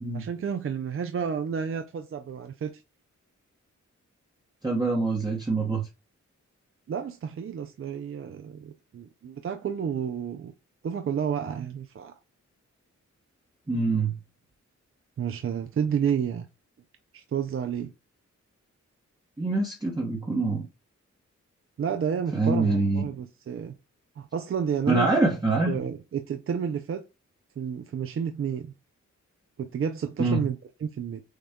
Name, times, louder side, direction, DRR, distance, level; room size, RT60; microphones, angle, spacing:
voice 1, 0.1-2.8 6.9-10.5 10.8-12.1 15.2-16.5 17.1-17.9 21.8-23.7 24.2-25.1 25.7-27.0 27.6-28.7 29.6-31.2, right 7 dB, 45° right, 0.4 m, -30 dB
voice 2, 4.6-5.9 13.7-14.1 19.4-20.6 22.3-23.0 24.9-25.8 30.2-30.4, right 3 dB, 15° right, 0.8 m, -25 dB
6.4 x 2.2 x 3.5 m
wide cardioid pair, 140°, 30 cm